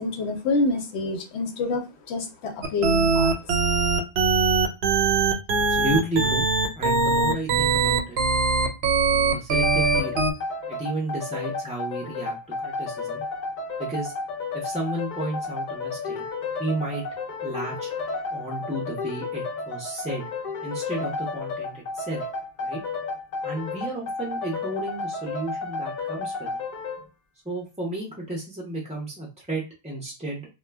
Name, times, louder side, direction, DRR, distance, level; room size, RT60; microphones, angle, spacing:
voice 1, 0.0-1.8 2.1-3.3, left 3 dB, 90° left, 4 dB, 0.9 m, -27 dB
sound 1, 2.6-10.3, right 4 dB, 75° right, 0.9 m, -21 dB
voice 2, 5.6-6.4 6.8-8.2 9.1-10.3 10.7-13.2 13.8-14.1 14.5-16.2 16.6-17.0 17.4-17.9 18.3-20.2 20.6-22.2 22.6-22.8 23.4-26.5 27.4-30.5, right 2 dB, 10° right, -3 dB, 0.4 m, -32 dB
sound 2, 9.6-27.0, left 4 dB, 55° left, 0.6 m, -32 dB
2.2 x 2.1 x 3.3 m, 0.29 s
omnidirectional pair, 1.1 m